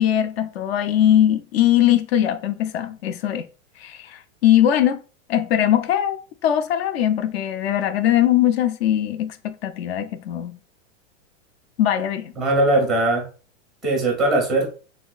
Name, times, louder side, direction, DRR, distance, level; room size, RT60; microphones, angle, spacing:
voice 1, 0.0-3.5 3.8-5.0 5.3-6.2 6.4-10.6 11.8-12.3, left 11 dB, 55° left, 0.4 m, -20 dB
voice 2, 12.4-13.2 13.8-14.7, right 2 dB, ahead, 0.5 m, -20 dB
3.2 x 2.7 x 2.2 m
supercardioid pair, 140°, 38 cm